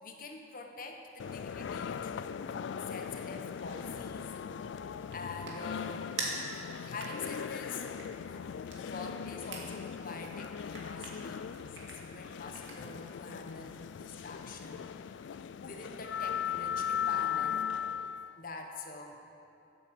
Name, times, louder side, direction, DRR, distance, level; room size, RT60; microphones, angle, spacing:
voice 1, 0.0-4.3 5.1-6.2 6.8-7.9 8.8-10.5 10.8-15.3 15.6-17.7 18.4-19.2, left 3 dB, 50° left, 3 dB, 1.3 m, -45 dB
sound 1, 1.2-18.3, left 8 dB, 80° left, 0.3 m, -38 dB
sound 2, 4.4-13.1, right 3 dB, 75° right, 2.3 m, -46 dB
11.5 x 8.6 x 7.7 m, 2.8 s
head